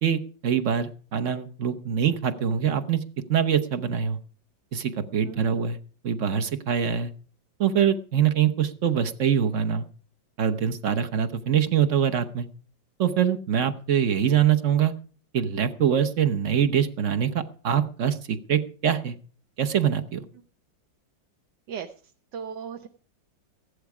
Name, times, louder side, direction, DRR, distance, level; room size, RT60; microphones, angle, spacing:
voice 1, 0.0-3.0 3.3-4.2 4.7-5.8 6.0-7.1 7.6-9.9 10.4-12.5 13.0-14.9 15.3-19.1 19.6-20.2, right 8 dB, 50° right, 9 dB, 1.1 m, -24 dB
voice 2, 21.7-22.9, right 7 dB, 70° right, 6 dB, 1.6 m, -38 dB
15.5 x 11.5 x 4.9 m, 0.42 s
omnidirectional pair, 2.0 m